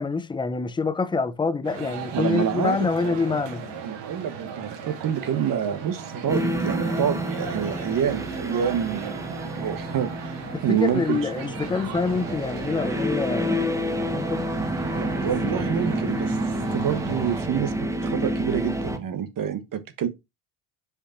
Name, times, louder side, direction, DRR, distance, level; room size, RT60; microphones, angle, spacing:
voice 1, 0.0-3.6 10.5-13.7 14.1-14.5, left 4 dB, 10° left, 0.5 m, -26 dB
sound 1, 1.6-17.4, right 6 dB, 80° right, 2.5 m, -37 dB
voice 2, 2.1-3.4 3.8-11.3 15.2-17.7 18.0-20.1, right 8 dB, 40° right, 1.3 m, -27 dB
sound 2, 6.3-19.0, equal, 5° right, 0.9 m, -29 dB
5.4 x 5.0 x 4.3 m
supercardioid pair, 100°, 49 cm